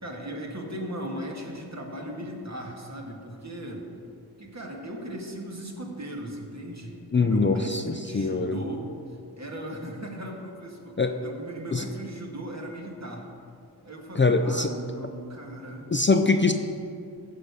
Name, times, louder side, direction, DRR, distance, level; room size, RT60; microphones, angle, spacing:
voice 1, 0.0-3.9 4.4-8.9 9.4-13.3 13.8-15.9, right 1 dB, 40° right, 0 dB, 1.8 m, -37 dB
voice 2, 7.1-8.6 11.0-11.2 11.7-11.8 14.2-14.7 15.9-16.5, left 3 dB, 30° left, 6 dB, 0.5 m, -23 dB
14.0 x 5.1 x 6.7 m, 2.5 s
wide cardioid pair, 75°, 40 cm